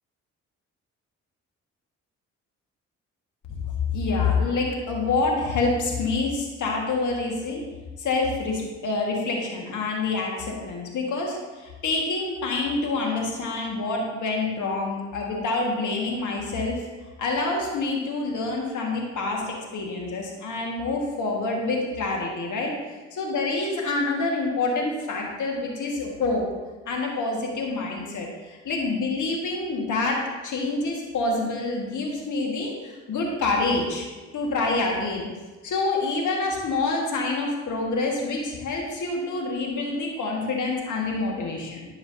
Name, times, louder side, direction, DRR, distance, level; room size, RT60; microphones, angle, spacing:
voice 1, 3.9-7.6 8.0-16.9 17.2-22.7 23.1-26.5 26.9-34.0 34.3-35.3 35.6-41.9, left 3 dB, 70° left, 0 dB, 1.7 m, -27 dB
11.0 x 4.9 x 2.7 m, 1.3 s
supercardioid pair, 55°, 32 cm